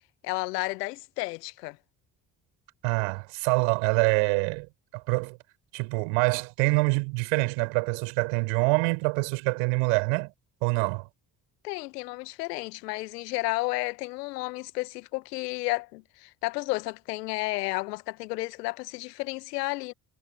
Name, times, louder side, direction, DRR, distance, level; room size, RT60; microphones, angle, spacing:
voice 1, 0.2-1.8 11.6-19.9, left 22 dB, 75° left, 1.9 m, -32 dB
voice 2, 2.8-4.7 4.9-5.4 5.7-10.3 10.6-11.1, right 40 dB or more, 75° right, 7.4 m, -25 dB
figure-of-eight pair, 45°, 48 cm